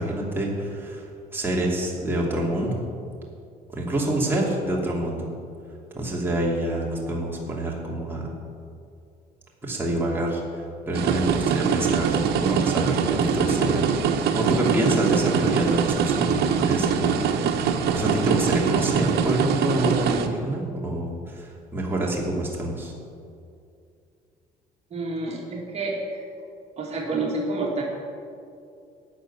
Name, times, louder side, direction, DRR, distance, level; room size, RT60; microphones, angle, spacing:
voice 1, 0.0-2.8 3.7-5.3 5.9-8.3 9.6-10.4 10.9-22.9, right 1 dB, 10° right, -4 dB, 2.8 m, -27 dB
sound 1, 10.9-20.3, right 7 dB, 75° right, 1.1 m, -23 dB
voice 2, 24.9-26.2 26.8-27.8, right 2 dB, 40° right, -2 dB, 2.7 m, -28 dB
13.0 x 6.8 x 9.9 m, 2.4 s
cardioid pair, 110°, 17 cm